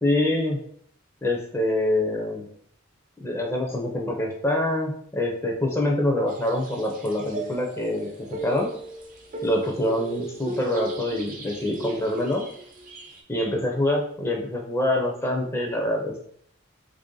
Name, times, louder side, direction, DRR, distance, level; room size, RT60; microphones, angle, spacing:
voice 1, 0.0-0.6 1.2-2.5 3.2-8.7 9.4-12.5 13.3-16.2, left 1 dB, 10° left, 0 dB, 0.5 m, -25 dB
sound 1, 6.3-13.2, right 2 dB, 40° right, 0.6 m, -37 dB
3.4 x 2.6 x 3.7 m, 0.63 s
head